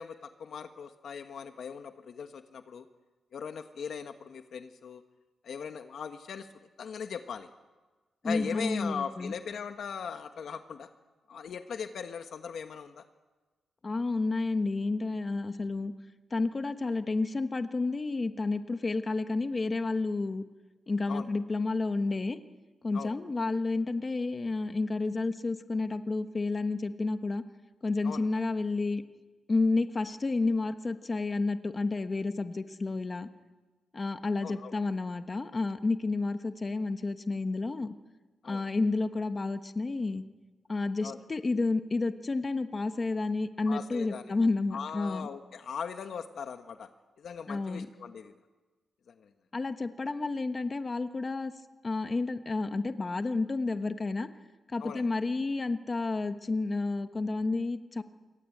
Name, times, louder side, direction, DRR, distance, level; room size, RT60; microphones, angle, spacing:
voice 1, 0.0-2.9 3.3-5.0 5.4-6.5 6.8-7.5 8.2-10.9 11.3-13.0 21.1-21.2 22.9-23.1 28.0-28.3 34.4-34.7 38.4-38.7 41.0-41.2 43.7-44.4 44.7-46.9 47.2-48.3 49.1-49.3 54.8-55.1, left 6 dB, 55° left, 7 dB, 1.3 m, -39 dB
voice 2, 8.2-9.3 13.8-15.9 16.3-20.4 20.9-22.4 22.8-27.4 27.8-29.0 29.5-33.3 33.9-37.9 38.4-40.2 40.7-45.3 47.5-47.9 49.5-51.5 51.8-54.3 54.7-58.0, left 3 dB, 25° left, 8 dB, 1.2 m, -30 dB
27.0 x 23.5 x 8.6 m, 1.3 s
wide cardioid pair, 175°, 0 cm